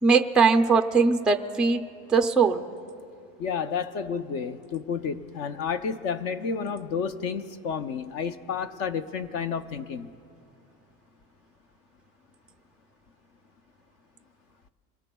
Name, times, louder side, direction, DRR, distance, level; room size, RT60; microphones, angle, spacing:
voice 1, 0.0-1.8 2.1-2.6, right 4 dB, 5° right, 4 dB, 0.3 m, -20 dB
voice 2, 3.4-10.1, left 6 dB, 45° left, 11 dB, 0.6 m, -31 dB
26.5 x 22.0 x 2.3 m, 2.4 s
cardioid pair, 155°, 34 cm